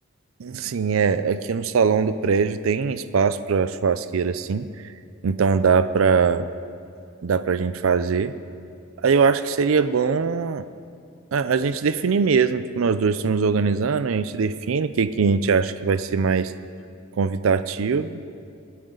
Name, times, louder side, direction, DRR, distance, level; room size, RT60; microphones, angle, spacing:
voice 1, 0.4-4.7 5.2-6.5 7.2-8.3 9.0-10.6 11.3-16.5 17.2-18.2, right 5 dB, 85° right, 13 dB, 0.5 m, -21 dB
26.5 x 9.3 x 3.9 m, 2.4 s
head